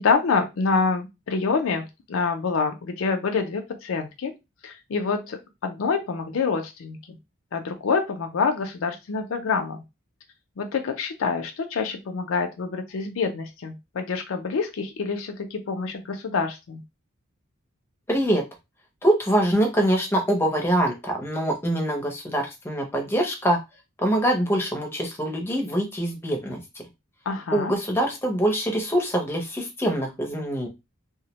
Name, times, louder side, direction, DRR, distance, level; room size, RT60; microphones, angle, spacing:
voice 1, 0.0-4.3 4.6-7.2 7.5-9.8 10.6-16.8 27.3-27.7, left 4 dB, 75° left, 5 dB, 0.4 m, -26 dB
voice 2, 18.1-18.4 19.0-23.6 24.0-26.6 27.5-30.7, right 1 dB, 10° left, 2 dB, 0.5 m, -24 dB
2.2 x 2.1 x 2.9 m, 0.23 s
head